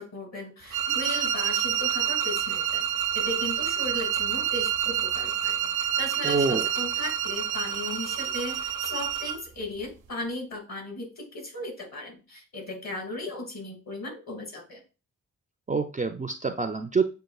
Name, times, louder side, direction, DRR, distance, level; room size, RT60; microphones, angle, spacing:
voice 1, 0.0-2.9 3.1-14.8, left 2 dB, 55° left, 1 dB, 2.1 m, -37 dB
sound 1, 0.7-9.4, right 9 dB, 70° right, 0.6 m, -28 dB
voice 2, 6.2-6.7 15.7-17.0, right 4 dB, 25° right, 7 dB, 0.4 m, -26 dB
7.6 x 2.6 x 2.3 m, 0.32 s
cardioid pair, 85°, 33 cm